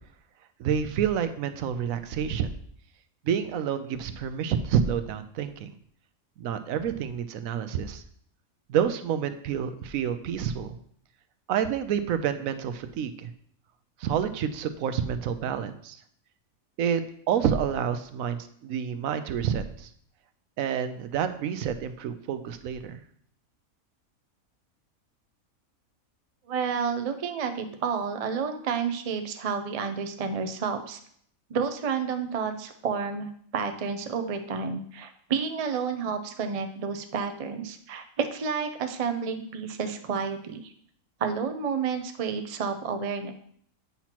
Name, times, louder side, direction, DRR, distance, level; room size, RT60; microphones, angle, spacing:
voice 1, 0.6-2.6 3.2-5.7 6.4-8.0 8.7-10.8 11.5-13.3 14.0-16.0 16.8-19.9 20.6-23.0, right 8 dB, 75° right, 10 dB, 1.0 m, -28 dB
voice 2, 26.5-31.0 31.5-40.7 41.2-43.3, right 6 dB, 60° right, 6 dB, 0.3 m, -30 dB
8.2 x 5.8 x 2.9 m, 0.64 s
omnidirectional pair, 1.5 m